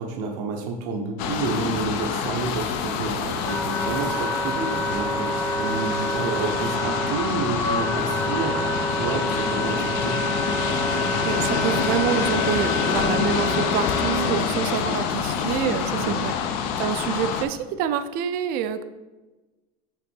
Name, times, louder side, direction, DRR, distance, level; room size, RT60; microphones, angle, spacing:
voice 1, 0.0-10.2 15.9-16.1, right 4 dB, 85° right, 2 dB, 0.8 m, -30 dB
sound 1, 1.2-17.4, left 7 dB, 60° left, 0.5 m, -26 dB
Wind instrument woodwind instrument, 3.0-14.4, right 1 dB, 15° left, 0.6 m, -28 dB
voice 2, 11.2-18.8, right 9 dB, 50° right, 11 dB, 0.4 m, -27 dB
5.8 x 3.6 x 4.4 m, 1.2 s
cardioid pair, 165°, 19 cm